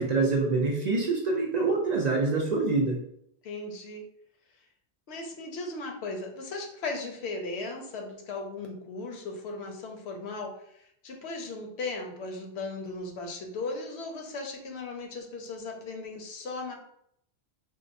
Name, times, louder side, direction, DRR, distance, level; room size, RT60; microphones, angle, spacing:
voice 1, 0.0-3.0, right 3 dB, 55° right, -1 dB, 0.5 m, -25 dB
voice 2, 3.4-4.0 5.1-16.7, left 3 dB, 80° left, 2 dB, 0.9 m, -37 dB
4.4 x 2.1 x 2.5 m, 0.71 s
omnidirectional pair, 1.1 m